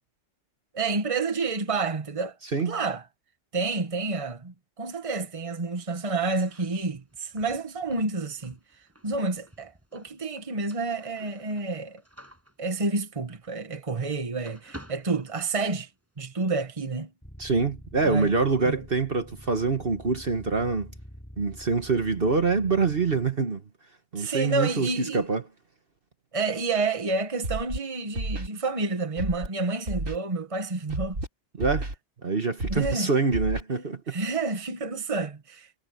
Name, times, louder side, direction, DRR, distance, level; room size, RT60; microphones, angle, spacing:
voice 1, 0.7-2.4 2.7-3.0 3.5-8.6 9.0-12.0 12.6-15.9 16.2-17.1 18.0-18.3 18.6-18.8 24.2-25.2 26.3-31.2 32.7-33.1 34.1-35.8, right 3 dB, 25° right, 1.5 m, -29 dB
sound 1, 6.4-14.1 14.4-16.0, equal, 10° right, 6.9 m, -51 dB
sound 2, 17.2-23.3, equal, 10° left, 5.3 m, -46 dB
voice 2, 17.4-20.9 21.4-23.6 24.1-25.4 31.6-31.9 32.2-34.2, right 4 dB, 45° right, 1.6 m, -25 dB
Scratching (performance technique), 27.4-27.8 28.2-28.5 29.2-29.5 29.9-30.2 30.9-31.3 31.6-31.9 32.6-32.9 33.3-33.6, right 2 dB, 80° right, 5.0 m, -31 dB
omnidirectional pair, 1.3 m